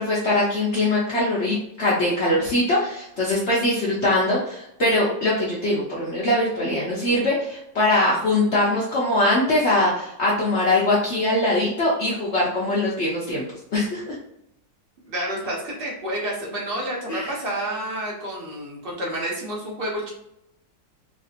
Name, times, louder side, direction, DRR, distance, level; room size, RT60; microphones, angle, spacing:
voice 1, 0.0-13.4 13.7-14.0 17.1-17.3, left 1 dB, 65° left, -5 dB, 0.6 m, -22 dB
voice 2, 15.1-20.1, right 1 dB, 40° right, -3 dB, 0.9 m, -29 dB
3.3 x 2.7 x 2.4 m, 0.80 s
omnidirectional pair, 2.0 m